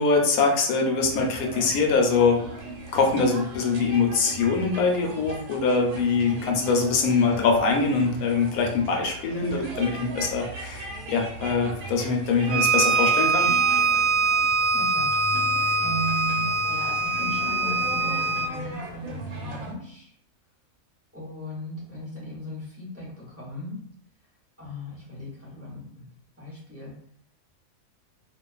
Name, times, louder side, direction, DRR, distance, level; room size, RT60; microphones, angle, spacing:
voice 1, 0.0-2.4 2.9-13.5, left 4 dB, 90° left, 2 dB, 1.1 m, -23 dB
sound 1, 1.0-19.7, right 2 dB, 90° right, 1.1 m, -39 dB
Bowed string instrument, 12.5-18.5, right 3 dB, 75° right, 1.0 m, -23 dB
voice 2, 14.7-15.1 15.8-20.1 21.1-23.8 24.6-26.1 26.4-26.9, right 1 dB, 15° right, -8 dB, 0.6 m, -36 dB
2.5 x 2.3 x 2.3 m, 0.66 s
omnidirectional pair, 1.5 m